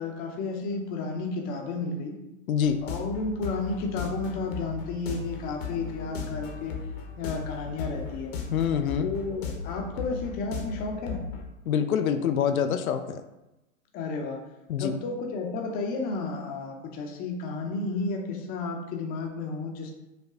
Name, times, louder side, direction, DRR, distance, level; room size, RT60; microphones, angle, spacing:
voice 1, 0.0-2.2 2.8-6.8 7.2-8.3 9.0-11.3 13.9-14.4 14.8-19.9, left 3 dB, 20° left, 2 dB, 0.7 m, -32 dB
voice 2, 2.5-2.8 8.5-9.1 11.7-13.2 14.7-14.9, left 8 dB, 80° left, 8 dB, 0.5 m, -25 dB
sound 1, 2.6-11.4, left 5 dB, 45° left, 1.0 m, -37 dB
5.5 x 2.3 x 3.7 m, 0.95 s
hypercardioid pair, 125°, 42 cm